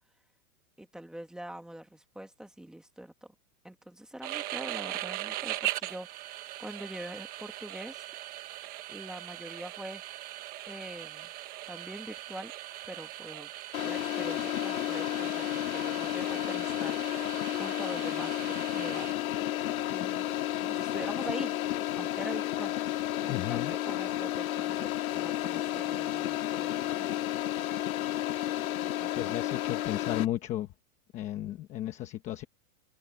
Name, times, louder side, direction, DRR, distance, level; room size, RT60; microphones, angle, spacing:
voice 1, 0.8-3.1 3.6-8.0 8.9-10.0 10.7-11.3 11.7-12.5 12.9-13.5 13.8-17.3 17.5-19.1 19.9-20.3 20.6-21.5 22.0-27.4 29.0-29.3, right 1 dB, ahead, 1.4 m, -44 dB
sound 1, 4.2-19.1, right 15 dB, 20° right, 1.2 m, -40 dB
sound 2, 13.7-30.3, left 14 dB, 70° left, 2.0 m, -32 dB
voice 2, 23.3-23.7 29.2-30.7 31.1-32.4, left 13 dB, 15° left, 1.0 m, -34 dB
supercardioid pair, 170°, 44 cm